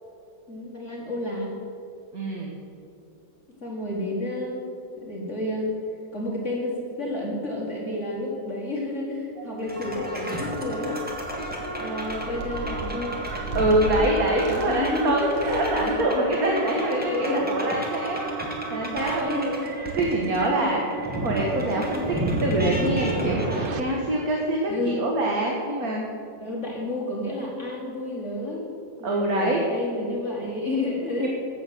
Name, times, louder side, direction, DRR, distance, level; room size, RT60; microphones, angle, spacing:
voice 1, 0.5-1.6 3.6-5.7 6.1-11.1 11.8-13.2 14.7-17.5 19.0-19.8 20.2-20.8 24.7-25.1 26.4-28.7 29.0-31.3, left 2 dB, 40° left, -3 dB, 2.1 m, -30 dB
voice 2, 2.1-2.5 13.5-19.4 20.0-20.8 21.2-23.4 23.8-26.1 29.0-29.6 31.2-31.3, right 1 dB, 50° right, -1 dB, 1.8 m, -25 dB
sound 1, 8.7-23.8, right 5 dB, 70° right, 0.5 m, -35 dB
sound 2, 9.6-23.7, right 1 dB, 5° right, 1.8 m, -33 dB
sound 3, 11.1-11.5 11.9-13.9 14.3-15.0 15.3-15.9, equal, 90° right, 2.6 m, -36 dB
15.0 x 7.2 x 7.7 m, 2.7 s
omnidirectional pair, 2.1 m